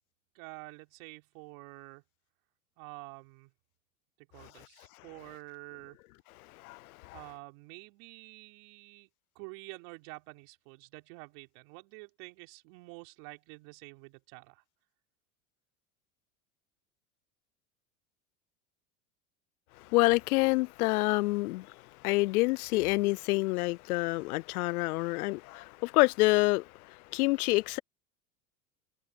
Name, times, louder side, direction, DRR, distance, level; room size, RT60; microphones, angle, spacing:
voice 1, 0.3-2.0 2.8-3.5 4.2-6.0 7.1-9.1 9.4-14.6, right 30 dB, 65° right, 4.0 m, -48 dB
voice 2, 6.6-7.2 19.9-21.7 22.0-27.8, left 22 dB, 75° left, 0.6 m, -27 dB
hypercardioid pair, 95°, 44 cm